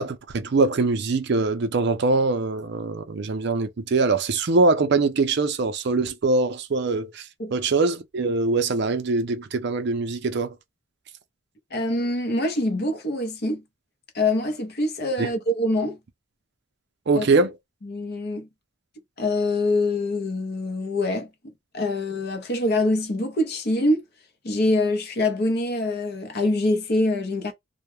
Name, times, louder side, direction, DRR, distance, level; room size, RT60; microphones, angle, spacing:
voice 1, 0.0-7.2 7.5-10.5 15.2-15.3 17.1-17.5, right 3 dB, 55° right, 0.4 m, -23 dB
voice 2, 11.7-13.6 14.1-16.0 17.1-17.3 17.8-18.5 19.2-24.0 24.4-27.5, left 2 dB, 50° left, 0.7 m, -24 dB
2.2 x 2.1 x 3.0 m
head